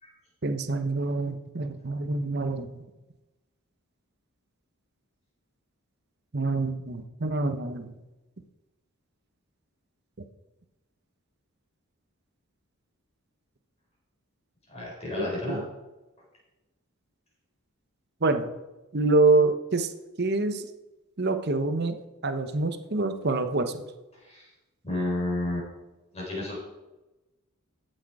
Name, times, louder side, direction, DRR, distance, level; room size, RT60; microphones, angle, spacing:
voice 1, 0.4-2.7 6.3-7.9 15.2-15.6 18.2-18.5 18.9-19.9 20.2-20.6 21.2-22.0 22.2-23.7, right 3 dB, 50° right, 8 dB, 0.9 m, -26 dB
voice 2, 14.7-15.6 24.2-24.5 24.8-25.7 26.1-26.6, left 1 dB, 30° left, -4 dB, 4.5 m, -31 dB
14.5 x 6.5 x 4.8 m, 1.1 s
head